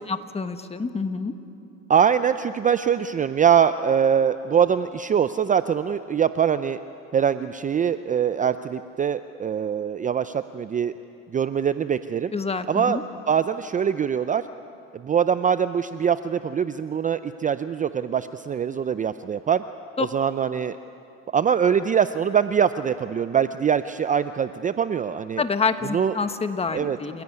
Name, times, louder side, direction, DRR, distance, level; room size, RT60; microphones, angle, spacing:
voice 1, 0.1-1.3 12.3-13.0 20.0-20.1 25.4-27.2, left 4 dB, 20° left, 9 dB, 1.4 m, -27 dB
voice 2, 1.9-6.8 7.1-10.9 11.3-12.3 12.7-13.0 13.3-14.5 14.9-19.6 20.0-20.8 21.3-25.4 25.9-26.2 26.7-27.0, right 8 dB, 25° right, 12 dB, 0.5 m, -23 dB
29.0 x 16.5 x 9.7 m, 2.7 s
supercardioid pair, 105°, 33 cm